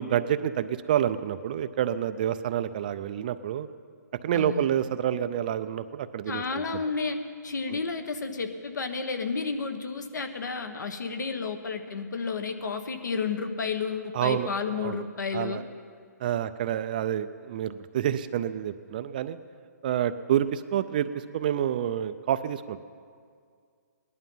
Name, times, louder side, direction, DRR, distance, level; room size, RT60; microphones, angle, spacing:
voice 1, 0.0-3.7 4.2-6.8 7.7-7.8 14.1-14.5 14.7-15.0 15.3-15.6 16.2-19.4 19.8-22.8, right 10 dB, 25° right, 12 dB, 0.4 m, -28 dB
voice 2, 4.3-4.7 6.3-7.2 7.4-15.6, left 5 dB, 70° left, 8 dB, 1.3 m, -31 dB
18.5 x 11.5 x 5.5 m, 2.2 s
hypercardioid pair, 160°, 10 cm